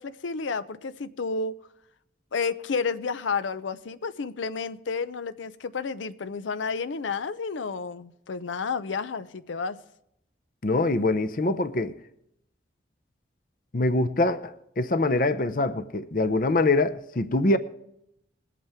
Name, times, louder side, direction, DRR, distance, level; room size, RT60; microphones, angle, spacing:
voice 1, 0.0-1.6 2.3-9.8, left 5 dB, 90° left, 0.6 m, -31 dB
voice 2, 10.6-12.0 13.7-17.6, left 2 dB, 45° left, 0.6 m, -24 dB
21.5 x 8.4 x 3.5 m
head